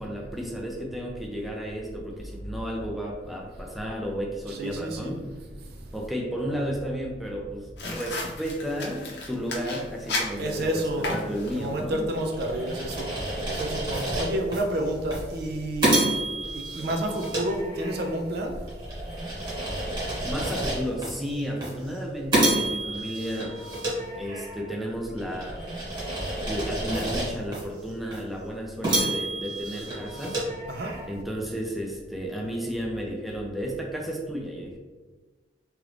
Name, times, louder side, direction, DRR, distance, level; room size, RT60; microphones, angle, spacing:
voice 1, 0.0-5.3 5.9-12.1 20.2-23.6 24.1-25.6 26.5-30.4 31.1-34.8, equal, ahead, -1 dB, 0.4 m, -33 dB
voice 2, 4.5-5.3 5.6-5.8 10.4-11.1 11.5-13.2 13.5-16.1 16.5-18.6 30.7-30.9, right 1 dB, 65° right, 2 dB, 0.5 m, -30 dB
sound 1, 7.8-11.8, left 2 dB, 70° left, 0.6 m, -34 dB
sound 2, 12.2-14.6 15.1-15.3 15.8-18.2 18.7-21.1 21.6-21.8 22.3-24.7 25.2-27.6 28.1-28.2 28.8-31.2, right 1 dB, 25° right, 1.1 m, -29 dB
3.0 x 2.5 x 3.2 m, 1.3 s
head